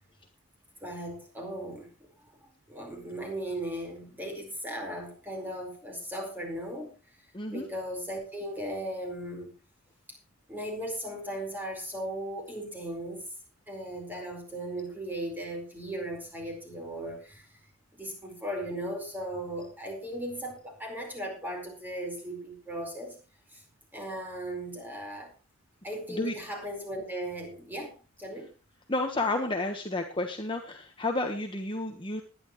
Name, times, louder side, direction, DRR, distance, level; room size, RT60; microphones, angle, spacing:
voice 1, 0.8-1.9 2.4-9.5 10.1-10.2 10.5-13.3 13.7-17.6 17.9-23.2 23.5-23.6 23.9-25.3 25.8-28.5, right 1 dB, 10° right, 2 dB, 4.7 m, -37 dB
voice 2, 7.3-7.6 26.1-26.4 28.9-32.2, left 2 dB, 25° left, 3 dB, 1.3 m, -31 dB
20.0 x 11.0 x 3.2 m, 0.33 s
head